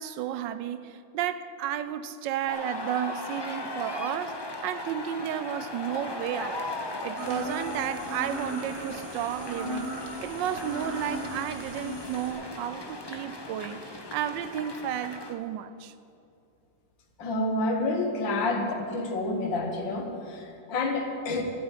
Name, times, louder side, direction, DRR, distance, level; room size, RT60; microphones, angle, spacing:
voice 1, 0.0-4.4 4.6-6.6 7.0-15.9, right 10 dB, 85° right, 1.3 m, -32 dB
sound 1, 2.5-15.3, left 2 dB, 35° left, 0.3 m, -38 dB
sound 2, 7.2-12.3, equal, 45° right, 2.4 m, -38 dB
voice 2, 17.2-21.4, left 2 dB, 85° left, 2.1 m, -29 dB
12.5 x 8.5 x 9.1 m
omnidirectional pair, 2.0 m